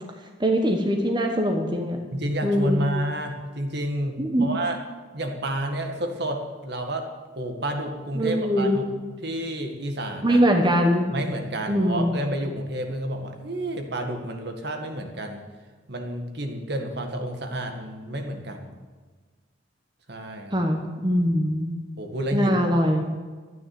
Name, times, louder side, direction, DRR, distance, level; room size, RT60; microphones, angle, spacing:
voice 1, 0.4-2.0 2.4-2.9 4.2-4.5 8.1-8.8 10.2-11.1 11.7-12.1 20.5-21.7 22.3-23.0, equal, 25° right, 2 dB, 1.2 m, -22 dB
voice 2, 2.1-4.8 5.1-7.1 7.3-8.9 9.2-10.4 11.1-15.4 15.9-18.8 20.1-20.6 22.0-22.5, right 1 dB, 60° right, 4 dB, 1.7 m, -30 dB
13.0 x 9.7 x 7.8 m, 1.4 s
head